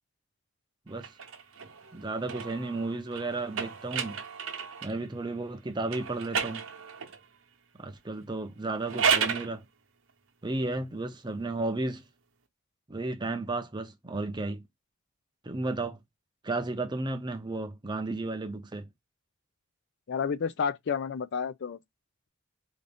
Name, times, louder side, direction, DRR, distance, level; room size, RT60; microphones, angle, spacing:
sound 1, 1.0-5.0 5.9-7.2 8.7-9.5, right 6 dB, 70° right, 0.8 m, -32 dB
voice 1, 1.9-4.2 4.8-6.6 7.8-9.7 10.4-12.0 12.9-14.6 15.4-16.0 16.4-18.9, right 2 dB, 20° right, 0.5 m, -33 dB
voice 2, 20.1-21.8, left 6 dB, 55° left, 0.4 m, -30 dB
3.9 x 2.5 x 3.4 m
head